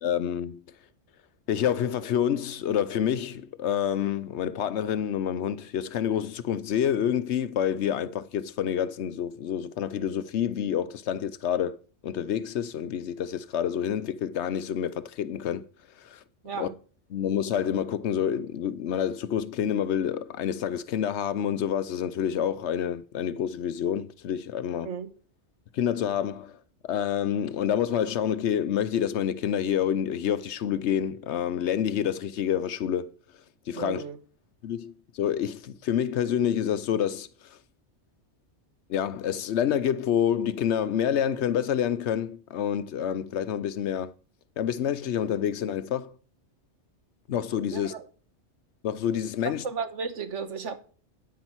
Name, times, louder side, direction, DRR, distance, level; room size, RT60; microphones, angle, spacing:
voice 1, 0.0-0.6 1.5-11.8 12.0-15.7 16.0-16.2 16.6-16.7 17.1-24.9 25.7-26.6 26.8-33.1 33.7-34.0 34.6-37.3 38.9-44.1 44.6-46.1 47.3-47.9 48.8-49.7, left 9 dB, 70° left, 1.0 m, -28 dB
voice 2, 33.8-34.2 47.7-48.0 49.6-50.8, right 5 dB, 90° right, 1.6 m, -34 dB
9.7 x 9.4 x 4.6 m
omnidirectional pair, 1.2 m